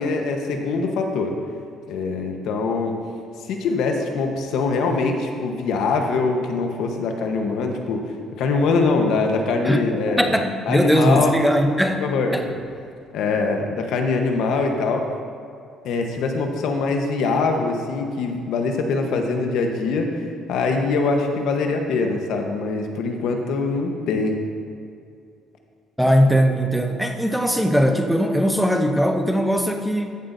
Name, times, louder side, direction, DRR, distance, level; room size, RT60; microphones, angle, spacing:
voice 1, 0.0-1.4 1.9-2.9 3.4-8.0 8.3-10.4 10.7-11.3 12.0-12.5 13.1-15.0 15.8-24.4, left 4 dB, 75° left, 3 dB, 1.1 m, -23 dB
voice 2, 9.6-12.4 26.0-30.1, equal, ahead, 4 dB, 0.8 m, -20 dB
14.0 x 7.9 x 2.7 m, 2.3 s
cardioid pair, 110°, 0 cm